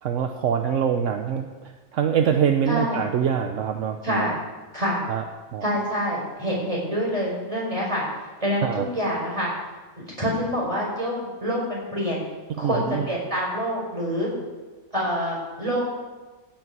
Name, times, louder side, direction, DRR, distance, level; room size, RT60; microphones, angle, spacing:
voice 1, 0.0-4.3 5.1-5.2 5.5-5.6 8.6-8.8 12.6-13.0, right 8 dB, 70° right, 6 dB, 1.1 m, -24 dB
voice 2, 2.7-3.0 4.0-4.4 4.7-5.0 5.6-8.0 8.4-9.5 10.2-11.1 11.4-12.2 12.6-14.3 14.9-15.8, equal, 25° right, -4 dB, 5.0 m, -26 dB
14.5 x 9.2 x 6.1 m, 1.3 s
omnidirectional pair, 1.3 m